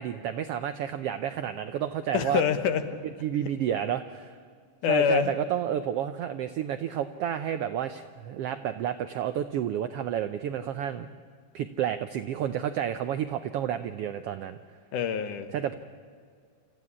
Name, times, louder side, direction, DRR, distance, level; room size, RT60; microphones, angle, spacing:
voice 1, 0.0-2.4 3.2-4.4 4.9-11.1 11.5-14.6 15.5-15.8, right 10 dB, 85° right, 10 dB, 1.3 m, -30 dB
voice 2, 2.1-2.8 4.8-5.3 14.9-15.5, left 7 dB, 85° left, 9 dB, 2.7 m, -25 dB
26.5 x 14.0 x 9.7 m, 2.1 s
omnidirectional pair, 3.5 m